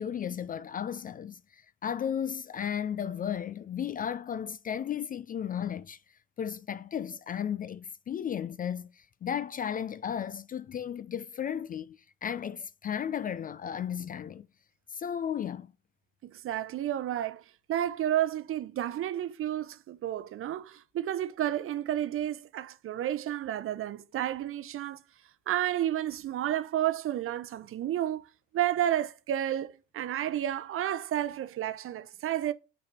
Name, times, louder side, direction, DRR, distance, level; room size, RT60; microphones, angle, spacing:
voice 1, 0.0-6.0 6.4-14.5 14.9-15.7, left 8 dB, 30° left, 0.4 m, -34 dB
voice 2, 16.2-17.4 17.7-25.0 25.5-28.3 28.5-32.5, right 12 dB, 45° right, 0.7 m, -31 dB
5.9 x 4.1 x 4.3 m
supercardioid pair, 85°, 30 cm